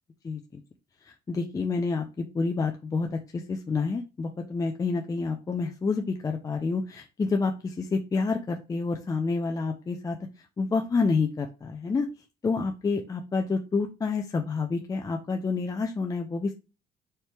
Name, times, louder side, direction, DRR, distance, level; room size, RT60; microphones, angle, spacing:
voice 1, 0.2-0.6 1.1-10.2 10.6-12.1 12.4-16.5, left 4 dB, 20° left, 4 dB, 0.5 m, -28 dB
4.4 x 2.8 x 3.4 m, 0.29 s
cardioid pair, 110°, 17 cm